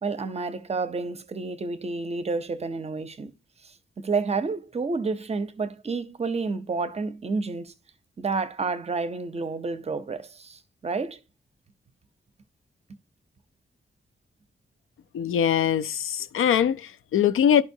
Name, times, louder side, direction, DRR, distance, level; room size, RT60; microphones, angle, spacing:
voice 1, 0.0-3.3 3.6-7.7 8.2-11.2, right 4 dB, 30° right, 0.5 m, -30 dB
voice 2, 15.1-17.6, left 9 dB, 90° left, 0.4 m, -22 dB
11.5 x 4.8 x 2.7 m
wide cardioid pair, 165°, 21 cm